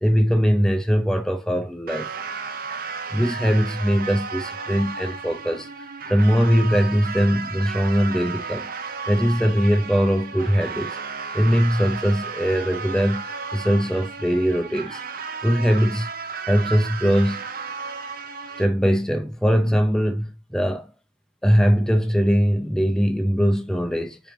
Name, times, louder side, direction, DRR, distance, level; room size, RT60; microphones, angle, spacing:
voice 1, 0.0-2.1 3.1-5.7 6.1-8.7 9.1-11.0 11.3-15.0 15.4-16.1 16.5-17.4 18.6-20.9 21.4-24.2, equal, 5° left, 0.6 m, -21 dB
sound 1, 1.9-18.6, right 5 dB, 55° right, 0.8 m, -34 dB
6.0 x 3.4 x 5.0 m
head